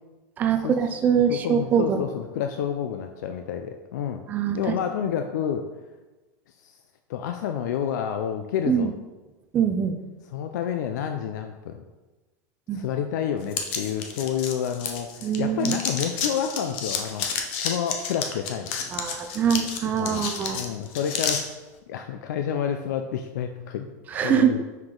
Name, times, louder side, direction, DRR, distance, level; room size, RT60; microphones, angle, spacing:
voice 1, 0.4-2.0 4.3-4.7 5.0-5.1 8.7-8.9 9.5-10.0 12.7-12.8 15.2-15.8 18.9-20.6 24.1-24.6, right 7 dB, 15° right, 7 dB, 0.4 m, -23 dB
voice 2, 1.3-4.2 4.5-5.6 6.6-6.8 7.1-8.9 10.3-11.8 12.7-17.3 17.6-18.9 19.9-20.3 20.5-21.5 21.9-23.9 24.2-24.6, left 8 dB, 75° left, 6 dB, 0.4 m, -29 dB
sound 1, 13.5-15.4 15.6-21.4, left 6 dB, 40° left, 0.7 m, -30 dB
5.7 x 4.9 x 3.8 m, 1.2 s
supercardioid pair, 175°, 10 cm